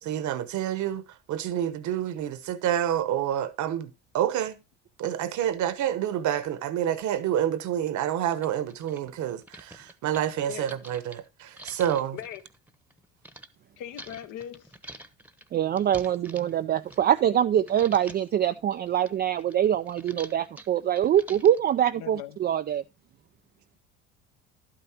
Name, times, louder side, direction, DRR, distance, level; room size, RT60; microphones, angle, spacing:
voice 1, 0.0-4.5 5.0-12.2, right 10 dB, 50° right, 1.1 m, -28 dB
sound 1, 7.2-7.3 7.9-8.0 8.2-13.5 14.0-17.4 17.7-18.3 18.7-21.7, right 1 dB, 5° right, 1.0 m, -47 dB
voice 2, 13.8-14.7 21.9-22.4, left 11 dB, 60° left, 0.9 m, -40 dB
voice 3, 15.5-22.8, right 10 dB, 30° right, 0.4 m, -24 dB
11.5 x 8.9 x 2.8 m
hypercardioid pair, 70°, 37 cm